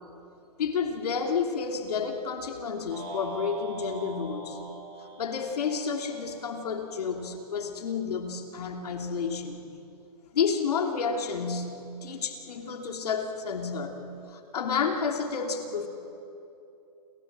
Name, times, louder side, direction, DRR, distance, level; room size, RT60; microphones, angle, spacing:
voice 1, 0.6-4.6 5.2-9.6 10.3-14.0 14.3-15.9, left 5 dB, 70° left, 4 dB, 2.9 m, -30 dB
sound 1, 2.9-7.2, right 3 dB, 45° right, 7.6 m, -43 dB
29.5 x 23.0 x 7.5 m, 2.8 s
hypercardioid pair, 165°, 20 cm